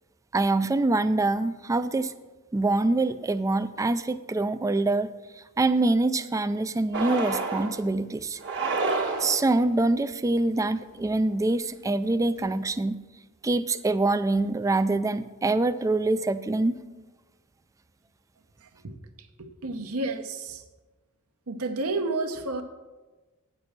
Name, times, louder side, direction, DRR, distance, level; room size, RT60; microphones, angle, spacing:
voice 1, 0.3-2.1 2.5-5.1 5.4-8.4 9.2-13.0 13.4-16.8, right 2 dB, 15° right, 13 dB, 0.3 m, -25 dB
sound 1, 6.9-7.8 8.4-9.6, right 3 dB, 50° right, 1.2 m, -28 dB
voice 2, 19.4-20.6 21.5-22.6, right 2 dB, 70° right, 5 dB, 0.9 m, -30 dB
8.9 x 6.0 x 6.6 m, 1.2 s
head